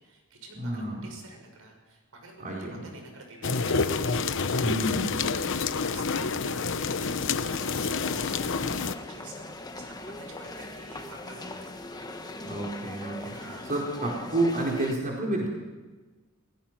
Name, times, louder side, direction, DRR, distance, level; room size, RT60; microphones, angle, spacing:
voice 1, 0.0-3.9 5.4-12.0 13.3-13.7, right 2 dB, 80° right, 2 dB, 6.4 m, -48 dB
voice 2, 0.5-1.0 2.4-2.8 4.6-5.1 12.4-15.5, right 1 dB, 40° right, -2 dB, 4.3 m, -30 dB
sound 1, 3.4-8.9, left 4 dB, 60° left, 1.0 m, -28 dB
sound 2, 7.5-14.9, left 2 dB, 20° left, 1.4 m, -41 dB
27.5 x 17.5 x 6.0 m, 1.3 s
head